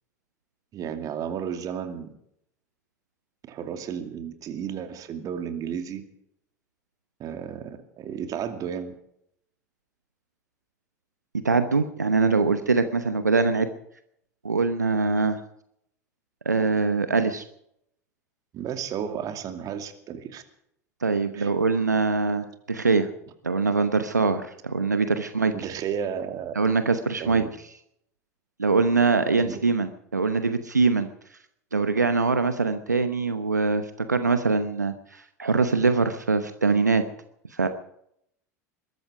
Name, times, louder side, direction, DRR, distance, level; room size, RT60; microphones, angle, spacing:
voice 1, 0.7-2.1 3.4-6.0 7.2-8.9 18.5-20.4 21.3-21.5 25.5-26.7 27.2-27.5 29.4-29.6, right 8 dB, 40° right, 7 dB, 2.5 m, -33 dB
voice 2, 11.4-13.7 14.4-15.4 16.4-17.4 21.0-23.1 23.4-25.5 26.5-27.4 28.6-31.1 31.7-37.0 37.5-37.7, right 4 dB, 90° right, 10 dB, 0.9 m, -23 dB
21.5 x 13.5 x 4.9 m, 0.74 s
figure-of-eight pair, 80°, 9 cm